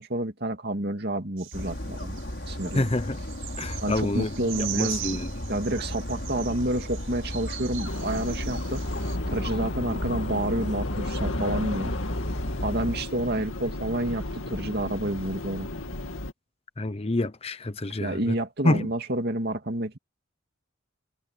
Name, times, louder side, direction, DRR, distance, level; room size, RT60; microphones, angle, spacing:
voice 1, 0.0-2.1 2.5-2.9 3.8-8.8 9.3-11.9 12.6-15.7 18.0-20.0, right 1 dB, 50° right, 2.5 m, -29 dB
sound 1, 1.4-9.2, right 13 dB, 85° right, 5.6 m, -40 dB
Dog, 1.5-13.0, left 1 dB, 55° left, 3.8 m, -34 dB
voice 2, 2.7-3.2 3.6-4.3 4.6-5.3 16.8-18.3 18.6-18.9, left 2 dB, 30° left, 0.8 m, -27 dB
sound 2, 7.9-16.3, left 2 dB, 80° left, 2.1 m, -34 dB
head